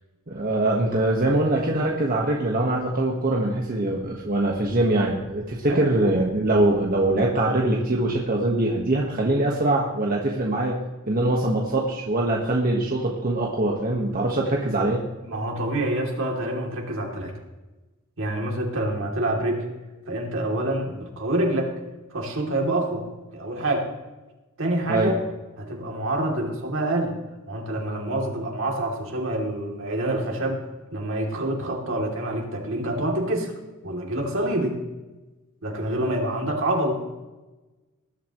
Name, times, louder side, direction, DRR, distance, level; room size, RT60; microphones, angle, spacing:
voice 1, 0.3-10.8 11.1-15.0 24.9-25.1, right 2 dB, 45° right, -1 dB, 1.5 m, -23 dB
voice 2, 15.2-17.3 18.2-19.6 20.1-21.7 22.1-23.1 23.3-23.9 24.6-25.2 25.6-27.1 27.5-30.6 30.9-33.5 33.8-34.8 35.6-37.0, right 1 dB, 65° right, 0 dB, 3.0 m, -26 dB
20.0 x 11.5 x 3.1 m, 1.1 s
head